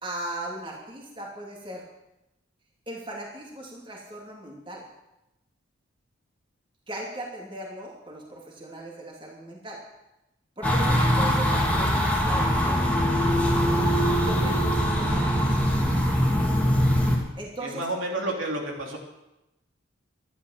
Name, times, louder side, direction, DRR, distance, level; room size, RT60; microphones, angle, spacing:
voice 1, 0.0-1.8 2.9-4.8 6.9-9.8 10.6-12.9 13.6-13.9 14.2-15.7 17.4-17.8, right 1 dB, 25° right, -1 dB, 2.7 m, -38 dB
sound 1, 10.6-17.2, equal, 5° left, 2.3 m, -22 dB
voice 2, 17.6-19.0, right 2 dB, 75° right, 0 dB, 3.0 m, -30 dB
12.5 x 11.0 x 7.4 m, 0.93 s
head